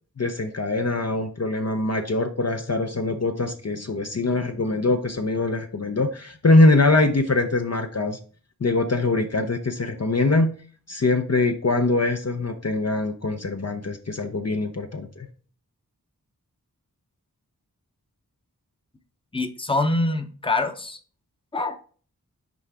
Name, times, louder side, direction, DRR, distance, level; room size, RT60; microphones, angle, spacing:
voice 1, 0.2-8.2 8.6-10.5 10.9-15.3, left 2 dB, 45° left, 5 dB, 0.7 m, -23 dB
voice 2, 19.3-21.0 21.5-21.8, left 2 dB, 15° left, 7 dB, 0.8 m, -25 dB
6.1 x 4.7 x 3.4 m, 0.41 s
wide cardioid pair, 45°, 36 cm